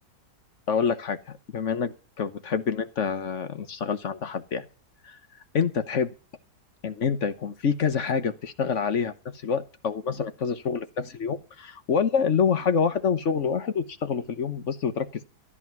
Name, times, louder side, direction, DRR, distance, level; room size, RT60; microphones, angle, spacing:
voice 1, 0.7-4.6 5.0-5.2 5.5-6.1 6.8-9.1 9.4-15.2, left 6 dB, 50° left, 1.3 m, -27 dB
13.5 x 11.0 x 6.0 m
omnidirectional pair, 1.7 m